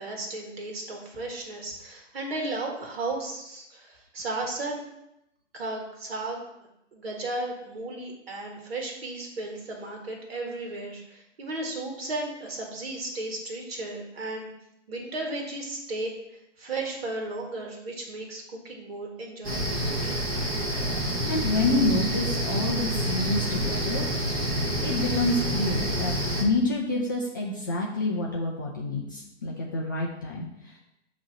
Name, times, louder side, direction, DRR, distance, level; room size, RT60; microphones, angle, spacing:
voice 1, 0.0-4.8 5.5-6.4 6.9-14.5 14.9-16.1 16.6-19.8, right 2 dB, 55° right, 1 dB, 2.0 m, -34 dB
sound 1, 19.4-26.4, right 1 dB, 25° right, 1.5 m, -28 dB
voice 2, 21.3-24.1 24.8-30.8, left 2 dB, 15° left, -3 dB, 0.4 m, -28 dB
7.7 x 3.0 x 6.0 m, 0.83 s
figure-of-eight pair, 130°, 37 cm